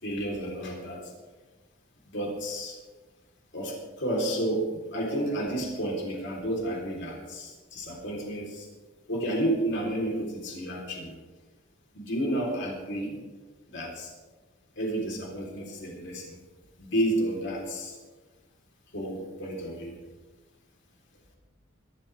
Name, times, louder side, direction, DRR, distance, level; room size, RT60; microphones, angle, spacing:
voice 1, 0.0-1.1 2.0-2.8 3.5-8.7 9.1-11.1 11.9-13.2 13.7-14.1 14.8-16.4 16.8-18.0 18.9-19.9, right 1 dB, 60° left, -2 dB, 4.0 m, -31 dB
22.5 x 13.0 x 3.6 m, 1.3 s
head